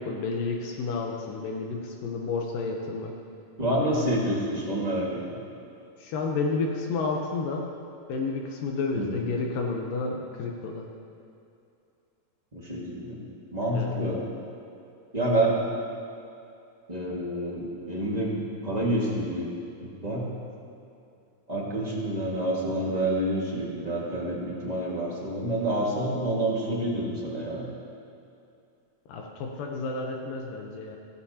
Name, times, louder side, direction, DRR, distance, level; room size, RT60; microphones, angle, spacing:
voice 1, 0.0-3.1 6.0-7.6 8.1-10.9 13.7-13.9 29.1-31.0, left 3 dB, 85° left, 1 dB, 2.6 m, -31 dB
voice 2, 3.6-5.2 8.9-9.2 12.5-13.2 13.5-14.2 15.1-15.6 16.9-19.5 19.8-20.3 21.5-27.7, right 1 dB, 20° right, -6 dB, 1.1 m, -28 dB
16.0 x 15.5 x 2.9 m, 2.6 s
omnidirectional pair, 3.8 m